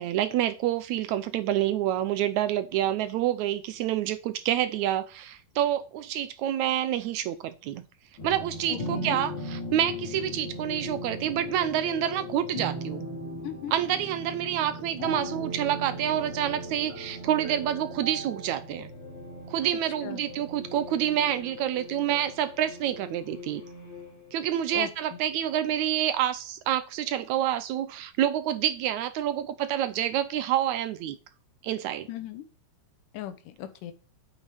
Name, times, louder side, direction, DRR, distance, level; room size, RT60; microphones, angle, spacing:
voice 1, 0.0-7.8 8.2-13.1 13.7-18.9 19.5-23.6 24.3-31.2 31.6-32.1, right 11 dB, 75° right, 1.9 m, -28 dB
sound 1, 8.2-24.7, equal, 35° left, 4.5 m, -38 dB
voice 2, 8.7-9.2 13.4-13.7 20.0-20.2 24.7-24.9 32.1-32.4 33.1-33.9, left 12 dB, 80° left, 2.6 m, -37 dB
8.7 x 8.1 x 5.0 m
omnidirectional pair, 3.7 m